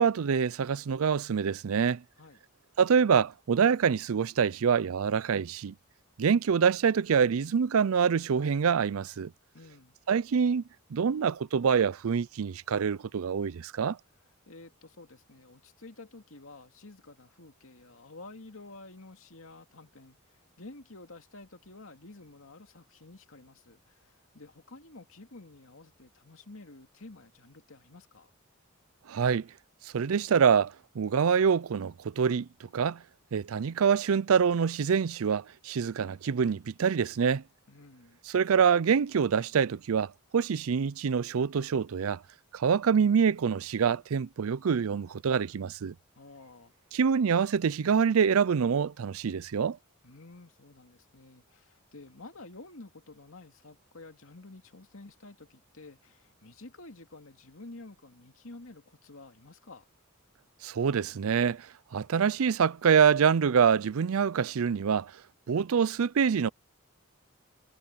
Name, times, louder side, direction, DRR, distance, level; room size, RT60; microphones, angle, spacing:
voice 1, 0.0-2.0 2.8-5.7 6.2-9.3 10.1-10.6 10.9-14.0 29.1-29.5 29.9-33.0 33.3-37.4 38.3-42.2 42.5-45.9 46.9-49.8 60.6-61.7 61.9-65.1 65.5-66.5, right 6 dB, 75° right, 0.4 m, -25 dB
voice 2, 9.5-10.0 14.5-28.3 37.7-38.2 46.2-46.7 50.0-59.8, left 2 dB, 70° left, 2.4 m, -50 dB
head